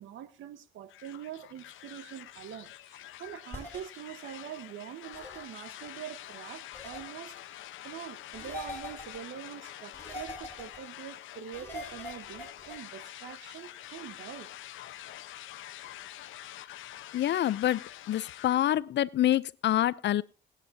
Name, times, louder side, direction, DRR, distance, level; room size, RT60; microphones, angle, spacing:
voice 1, 0.0-14.5, right 10 dB, 75° right, 1.3 m, -44 dB
sound 1, 0.9-18.6, left 13 dB, 85° left, 0.9 m, -46 dB
sound 2, 3.5-3.8 5.1-5.4 6.7-7.0 8.3-9.2 9.9-10.8 11.5-12.8, left 1 dB, 10° left, 7.0 m, -42 dB
voice 2, 17.1-20.2, left 12 dB, 60° left, 0.6 m, -27 dB
20.5 x 9.1 x 2.8 m
cardioid pair, 90°, 20 cm